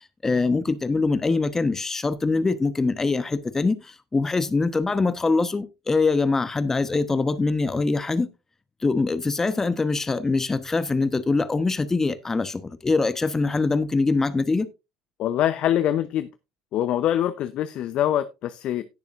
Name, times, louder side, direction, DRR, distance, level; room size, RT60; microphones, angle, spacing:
voice 1, 0.2-8.3 8.8-14.7, left 3 dB, 20° left, 1.2 m, -23 dB
voice 2, 15.2-16.3 16.7-18.8, left 11 dB, 55° left, 0.8 m, -24 dB
17.5 x 6.8 x 2.6 m
hypercardioid pair, 65°, 2 cm